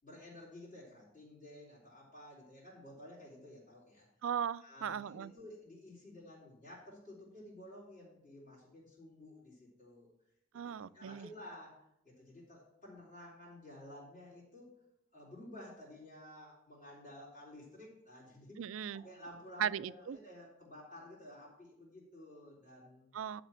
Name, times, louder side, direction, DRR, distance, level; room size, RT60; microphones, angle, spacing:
voice 1, 0.0-4.1 4.6-10.1 10.5-14.7 15.1-18.6 18.9-23.1, left 1 dB, 40° left, -10 dB, 3.9 m, -53 dB
voice 2, 4.2-5.3 10.5-11.3 18.6-19.0 19.6-20.2 23.1-23.4, right 8 dB, 70° right, 17 dB, 0.4 m, -37 dB
11.5 x 4.1 x 7.7 m, 0.78 s
head